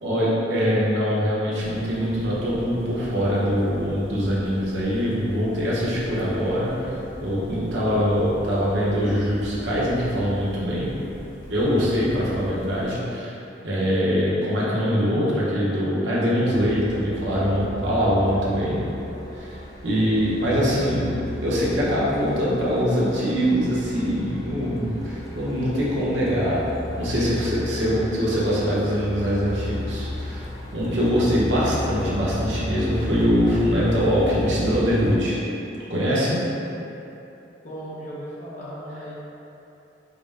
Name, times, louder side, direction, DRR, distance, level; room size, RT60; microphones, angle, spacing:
voice 1, 0.0-6.8 7.2-10.9 11.5-13.4 13.6-18.8 19.3-19.6 19.8-26.6 27.0-30.4 30.7-35.4 35.9-36.4, equal, 90° right, -7 dB, 1.0 m, -23 dB
sound 1, 1.6-12.9, equal, 80° left, 0.9 m, -41 dB
Truck, 16.5-35.2, left 1 dB, 20° left, 0.4 m, -34 dB
voice 2, 37.6-39.1, equal, 40° left, -8 dB, 0.9 m, -36 dB
4.8 x 2.1 x 3.5 m, 2.9 s
head